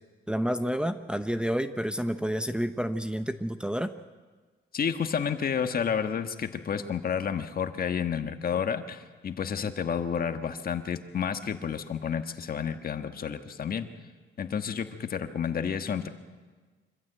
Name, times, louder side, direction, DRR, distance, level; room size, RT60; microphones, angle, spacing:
voice 1, 0.3-3.9, equal, 5° right, 8 dB, 0.9 m, -29 dB
voice 2, 4.7-13.9 14.4-16.1, left 7 dB, 50° left, 8 dB, 1.5 m, -30 dB
25.0 x 15.0 x 8.0 m, 1.4 s
cardioid pair, 90°, 20 cm